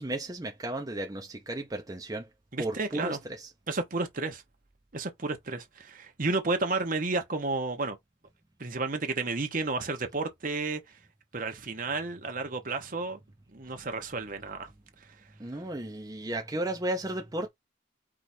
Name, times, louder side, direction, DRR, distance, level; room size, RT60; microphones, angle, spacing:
voice 1, 0.0-2.3 2.6-3.5 15.4-17.5, right 1 dB, 20° right, 0.6 m, -34 dB
voice 2, 2.5-3.2 3.7-4.4 4.9-8.0 8.6-10.8 11.3-13.2 13.5-14.7, right 3 dB, 45° right, 1.0 m, -32 dB
4.9 x 2.5 x 4.3 m
head